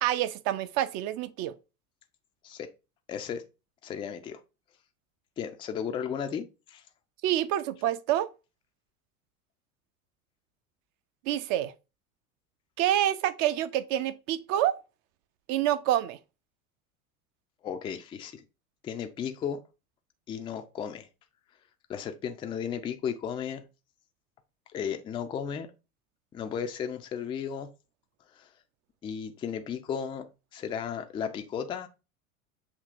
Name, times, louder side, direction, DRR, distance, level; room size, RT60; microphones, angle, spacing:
voice 1, 0.0-1.5 7.2-8.3 11.3-11.7 12.8-14.8 15.5-16.2, right 12 dB, 45° right, 0.5 m, -27 dB
voice 2, 3.1-3.4 3.8-4.4 5.4-6.8 17.6-18.4 18.8-19.6 20.3-21.1 21.9-23.6 24.7-25.7 26.3-27.7 28.4-28.5 29.0-31.9, left 7 dB, 15° left, 0.3 m, -34 dB
7.3 x 2.8 x 2.5 m
figure-of-eight pair, 80°, 43 cm